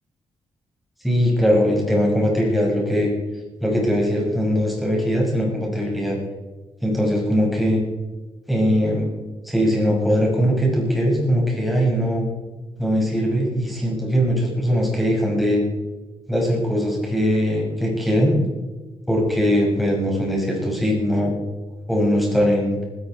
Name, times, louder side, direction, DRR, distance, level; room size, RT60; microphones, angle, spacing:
voice 1, 1.0-3.1 3.6-6.2 6.8-7.8 8.5-9.1 9.4-12.2 12.8-15.6 16.3-18.4 19.1-21.3 21.9-22.7, equal, ahead, -2 dB, 6.4 m, -20 dB
20.0 x 14.0 x 4.7 m, 1.2 s
cardioid pair, 125°, 10 cm